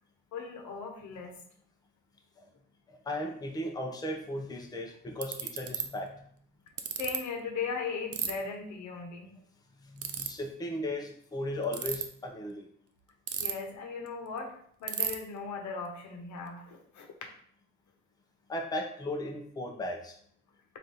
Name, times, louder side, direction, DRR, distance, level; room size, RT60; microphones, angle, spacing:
voice 1, 0.3-1.4 7.0-9.3 13.4-17.1, left 5 dB, 70° left, 2 dB, 0.9 m, -38 dB
voice 2, 2.9-6.3 9.8-12.7 18.5-20.2, left 1 dB, 15° left, 2 dB, 0.6 m, -36 dB
Ratchet pawl, 4.5-4.6 5.2-5.8 6.8-7.2 8.1-8.3 10.0-10.3 11.6-12.0 13.3-13.7 14.1-14.2 14.4-14.5 14.9-15.1, right 9 dB, 50° right, 0.5 m, -32 dB
3.5 x 2.6 x 4.3 m, 0.62 s
cardioid pair, 90°, 30 cm